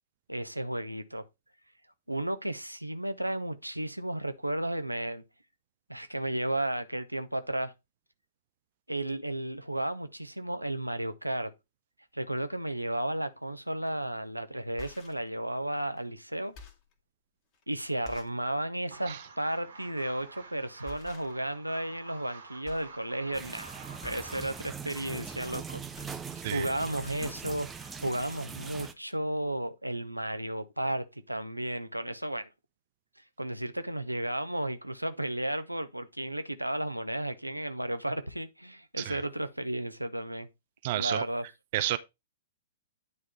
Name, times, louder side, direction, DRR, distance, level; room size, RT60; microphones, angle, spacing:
voice 1, 0.3-1.2 2.1-5.2 5.9-7.7 8.9-11.5 12.1-16.5 17.7-23.7 24.0-25.8 26.3-32.5 33.4-40.5 40.9-41.4, right 1 dB, 90° right, 0.7 m, -33 dB
sound 1, 13.9-14.0 14.6-15.3 15.9-16.1 16.4-16.9 17.5-17.6 18.0-18.4 18.8-19.0 20.2-20.4 20.8-21.6 21.9-22.4 22.6-23.0 23.3-23.5 24.0-24.4 25.6-26.7 26.9-27.5 28.2-28.3 28.6-28.7, left 4 dB, 35° left, 1.6 m, -51 dB
sound 2, 18.9-24.7, right 4 dB, 70° right, 1.6 m, -49 dB
sound 3, 23.3-28.9, right 6 dB, 15° right, 0.7 m, -41 dB
voice 2, 40.8-41.2 41.7-42.0, right 14 dB, 45° right, 0.4 m, -30 dB
9.4 x 3.6 x 4.2 m
figure-of-eight pair, 110°, 0 cm